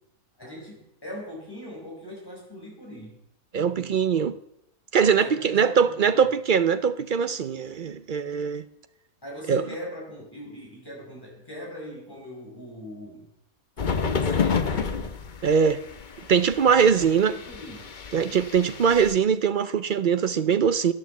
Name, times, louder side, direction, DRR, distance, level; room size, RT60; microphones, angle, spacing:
voice 1, 0.4-3.2 5.1-6.3 9.2-13.3 14.1-15.2 16.7-17.9, equal, 15° left, 5.6 m, -41 dB
voice 2, 3.5-4.4 4.9-8.6 9.5-9.7 15.4-15.8 16.3-17.4 18.1-20.9, right 7 dB, 60° right, 0.5 m, -22 dB
sound 1, 13.8-19.1, left 5 dB, 40° left, 0.9 m, -30 dB
11.5 x 11.0 x 7.2 m
omnidirectional pair, 1.5 m